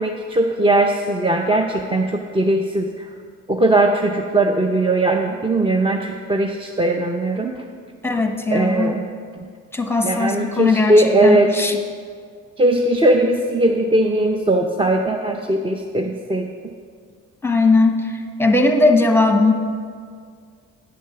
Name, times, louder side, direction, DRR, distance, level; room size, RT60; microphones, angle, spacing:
voice 1, 0.0-3.0 3.5-7.6 8.5-9.0 10.0-11.5 12.6-16.7, right 1 dB, 20° right, 2 dB, 0.6 m, -19 dB
voice 2, 8.0-9.0 9.7-11.8 17.4-19.5, left 3 dB, 10° left, 5 dB, 0.9 m, -18 dB
9.7 x 6.5 x 5.7 m, 2.1 s
cardioid pair, 90°, 30 cm